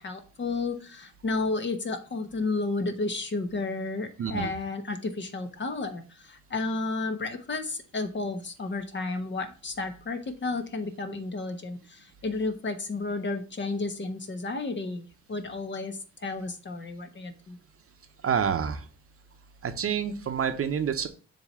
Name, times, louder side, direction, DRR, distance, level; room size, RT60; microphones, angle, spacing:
voice 1, 0.0-17.6, left 3 dB, 40° left, 7 dB, 1.1 m, -32 dB
voice 2, 4.2-4.5 18.2-18.8 19.6-21.1, right 7 dB, 50° right, 7 dB, 0.9 m, -28 dB
7.3 x 3.0 x 5.7 m, 0.36 s
cardioid pair, 90°, 30 cm